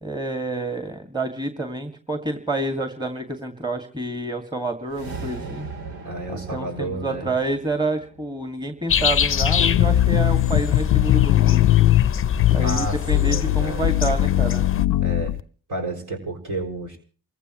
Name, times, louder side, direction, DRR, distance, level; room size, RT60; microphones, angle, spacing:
voice 1, 0.0-5.7 6.3-12.0 12.5-14.6, right 2 dB, 10° right, 6 dB, 2.3 m, -28 dB
sound 1, 4.8-9.2, right 4 dB, 80° right, 2.6 m, -38 dB
voice 2, 6.0-7.3 12.6-13.9 15.0-15.4 15.7-17.0, right 2 dB, 55° right, 2 dB, 6.5 m, -31 dB
sound 2, 8.9-14.9, left 8 dB, 35° left, 0.7 m, -25 dB
sound 3, 9.4-15.4, left 15 dB, 90° left, 0.7 m, -20 dB
29.0 x 15.0 x 3.1 m, 0.41 s
cardioid pair, 70°, 36 cm